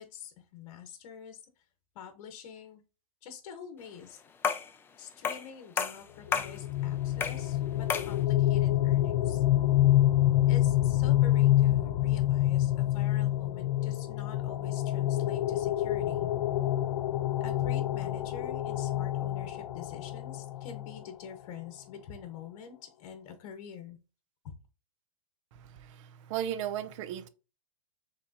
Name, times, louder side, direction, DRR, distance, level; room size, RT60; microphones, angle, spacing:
voice 1, 0.0-1.4 1.9-2.8 3.2-4.2 5.0-9.4 10.5-16.3 17.4-24.0, left 7 dB, 55° left, 1.1 m, -46 dB
sound 1, 4.4-4.7 5.2-5.5 5.8-6.6 7.2-7.5 7.9-8.2, left 6 dB, 10° left, 0.3 m, -31 dB
sound 2, 6.3-21.0, left 14 dB, 80° left, 0.4 m, -27 dB
voice 2, 25.5-27.3, right 10 dB, 55° right, 0.6 m, -36 dB
5.1 x 3.4 x 2.8 m
hypercardioid pair, 140°, 19 cm